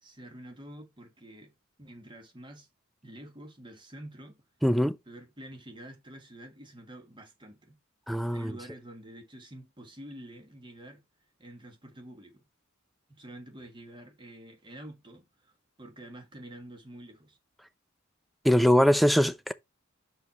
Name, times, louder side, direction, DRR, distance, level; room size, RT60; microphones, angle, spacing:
voice 1, 0.0-1.5 1.8-2.7 3.0-4.4 5.1-7.8 8.3-11.0 11.4-12.4 13.1-17.4, right 1 dB, 25° right, 1.5 m, -48 dB
voice 2, 4.6-4.9 8.1-8.5 18.4-19.5, equal, ahead, 0.4 m, -22 dB
5.9 x 5.1 x 4.1 m
head